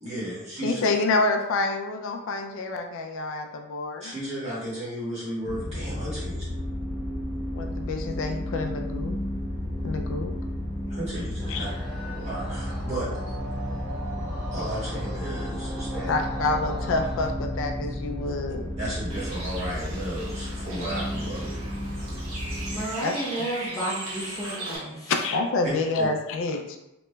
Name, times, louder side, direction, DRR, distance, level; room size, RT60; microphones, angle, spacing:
voice 1, 0.0-0.8 4.0-6.4 10.9-11.7 12.1-13.3 14.5-16.1 18.8-21.5 22.0-22.1 25.6-25.7 26.0-26.1, right 1 dB, 30° right, -9 dB, 1.3 m, -34 dB
voice 2, 0.6-4.1 7.6-9.2 9.8-10.3 11.5-11.7 16.1-18.7 23.0-23.5 25.1-26.8, left 3 dB, 65° left, 4 dB, 0.3 m, -27 dB
sound 1, 5.4-22.8, left 1 dB, 50° right, 1.3 m, -32 dB
sound 2, 11.4-17.3, right 1 dB, ahead, 1.0 m, -40 dB
Bird, 19.1-24.8, right 1 dB, 70° right, 1.0 m, -38 dB
voice 3, 22.7-25.1, right 1 dB, 15° left, -6 dB, 0.6 m, -32 dB
3.1 x 2.9 x 2.2 m, 0.91 s
head